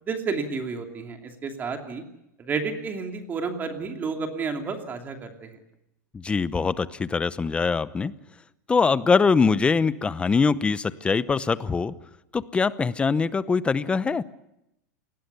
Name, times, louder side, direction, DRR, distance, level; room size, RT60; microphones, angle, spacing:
voice 1, 0.0-2.0 2.4-5.6, right 4 dB, 20° right, 4 dB, 2.8 m, -31 dB
voice 2, 6.1-8.1 8.7-11.9 12.3-14.2, left 5 dB, 10° left, 16 dB, 0.8 m, -23 dB
28.0 x 20.0 x 6.9 m, 0.85 s
supercardioid pair, 150°, 9 cm